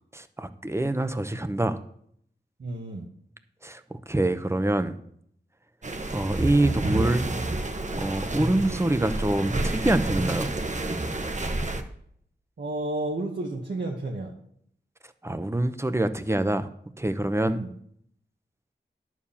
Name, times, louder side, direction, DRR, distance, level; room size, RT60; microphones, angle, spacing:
voice 1, 0.1-1.8 3.6-3.8 4.1-5.0 6.1-7.3 8.0-10.5 15.2-16.7 17.0-17.6, right 1 dB, 15° right, 10 dB, 0.8 m, -25 dB
voice 2, 2.6-3.1 12.6-14.3 17.5-17.7, right 2 dB, 75° right, -2 dB, 1.5 m, -31 dB
sound 1, 5.8-11.8, right 2 dB, 40° right, 1.1 m, -29 dB
11.0 x 4.8 x 7.1 m, 0.67 s
cardioid pair, 50°, 18 cm